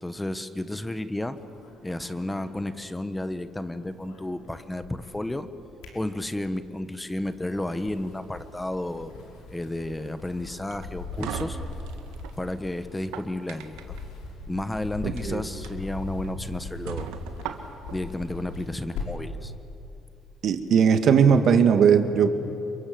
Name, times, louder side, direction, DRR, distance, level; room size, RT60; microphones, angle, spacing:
voice 1, 0.0-1.4 1.8-5.5 5.9-9.1 9.5-11.6 12.4-14.0 14.5-17.1 17.9-19.5, left 1 dB, 10° left, 11 dB, 1.3 m, -32 dB
sound 1, 1.2-3.3 3.6-5.2 5.6-6.6 7.1-19.4, left 3 dB, 90° left, 5.7 m, -40 dB
sound 2, 10.7-12.4 12.9-14.0 15.0-15.2 15.6-15.7 16.2-16.3 16.9-18.0, right 8 dB, 90° right, 1.8 m, -37 dB
voice 2, 15.0-15.4 20.4-22.3, right 7 dB, 60° right, 8 dB, 2.0 m, -19 dB
28.5 x 23.5 x 7.8 m, 2.9 s
cardioid pair, 85°, 0 cm